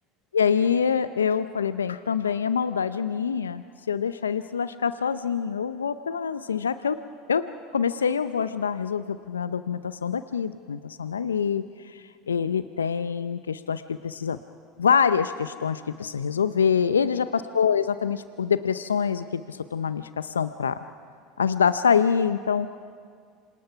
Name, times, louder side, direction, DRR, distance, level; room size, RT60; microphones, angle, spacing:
voice 1, 0.3-7.0 7.3-7.5 7.7-14.4 14.8-20.8 21.4-22.7, left 7 dB, 90° left, 13 dB, 0.5 m, -25 dB
27.0 x 27.0 x 5.8 m, 2.1 s
hypercardioid pair, 75°, 0 cm